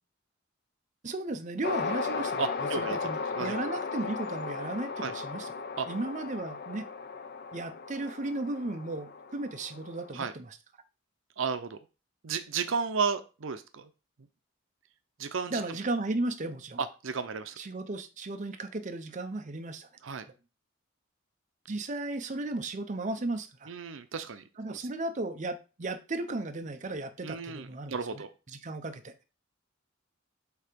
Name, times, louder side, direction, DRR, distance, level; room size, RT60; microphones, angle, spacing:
voice 1, 1.0-5.5 5.9-6.9 7.5-10.6 15.5-16.8 17.6-19.9 21.7-23.7 24.6-29.1, right 2 dB, 40° right, 7 dB, 0.7 m, -35 dB
sound 1, 1.6-10.2, left 4 dB, 55° left, 0.6 m, -36 dB
voice 2, 2.4-3.0 3.4-3.6 5.0-5.1 5.8-5.9 10.1-10.3 11.4-11.8 12.2-13.9 15.2-15.6 16.8-17.6 20.0-20.3 23.7-24.8 27.2-28.3, right 5 dB, 80° right, 10 dB, 0.6 m, -33 dB
7.9 x 2.8 x 5.1 m, 0.31 s
head